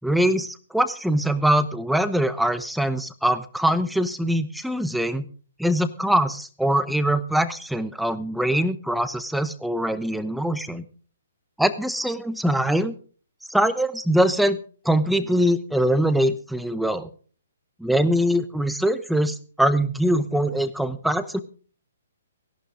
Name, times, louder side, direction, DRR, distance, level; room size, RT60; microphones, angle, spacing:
voice 1, 0.0-5.3 5.6-10.8 11.6-12.9 13.5-14.6 14.8-17.1 17.8-21.4, right 1 dB, ahead, 12 dB, 0.9 m, -23 dB
17.0 x 11.5 x 5.0 m, 0.43 s
figure-of-eight pair, 125°, 0 cm